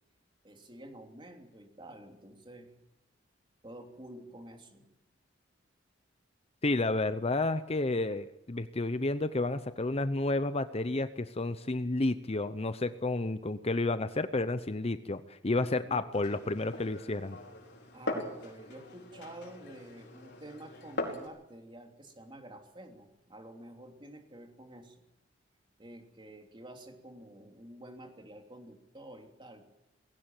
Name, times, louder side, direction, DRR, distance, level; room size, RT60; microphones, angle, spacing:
voice 1, 0.4-2.7 3.6-4.9 15.8-16.1 17.9-25.0 25.8-29.7, right 1 dB, 25° right, 3 dB, 3.3 m, -49 dB
voice 2, 6.6-17.4, left 2 dB, 35° left, 12 dB, 0.8 m, -31 dB
Glass, 16.1-21.3, left 2 dB, 60° left, 5.1 m, -41 dB
20.0 x 17.0 x 9.1 m, 0.87 s
head